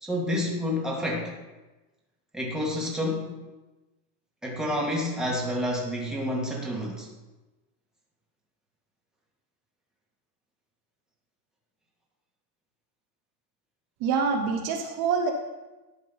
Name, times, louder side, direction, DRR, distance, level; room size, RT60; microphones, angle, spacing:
voice 1, 0.0-1.3 2.3-3.3 4.4-7.1, left 1 dB, ahead, -3 dB, 1.7 m, -29 dB
voice 2, 14.0-15.3, right 5 dB, 50° right, 3 dB, 1.0 m, -26 dB
11.0 x 3.8 x 5.4 m, 1.1 s
supercardioid pair, 120°, 47 cm